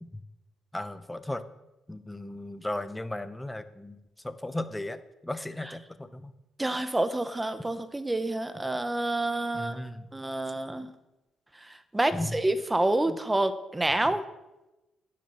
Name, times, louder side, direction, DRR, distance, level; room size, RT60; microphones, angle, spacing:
voice 1, 0.7-1.4 1.9-6.3 9.5-10.1 10.7-10.8 12.1-12.4 13.0-13.2 14.0-14.1, left 1 dB, 10° left, 11 dB, 1.0 m, -36 dB
voice 2, 6.6-9.8 10.1-10.9 11.9-14.2, right 2 dB, 15° right, 11 dB, 1.2 m, -28 dB
10.5 x 10.5 x 6.9 m, 1.0 s
cardioid pair, 90°, 0 cm